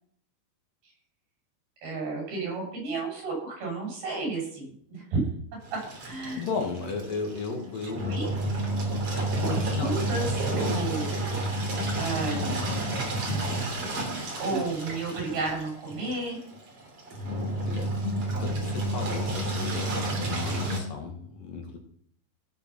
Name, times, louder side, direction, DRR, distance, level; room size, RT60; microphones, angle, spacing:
voice 1, 1.8-5.2 5.7-6.4 8.1-8.3 9.4-11.2 12.0-13.1 14.4-16.4, right 3 dB, 75° right, -2 dB, 8.8 m, -32 dB
Engine, 5.6-20.8, right 1 dB, 40° right, 3.6 m, -30 dB
voice 2, 6.4-8.2 9.0-10.0 17.1-17.3 17.5-18.0 18.4-21.8, left 4 dB, 65° left, 3 dB, 3.6 m, -35 dB
16.5 x 6.9 x 6.1 m, 0.62 s
omnidirectional pair, 4.4 m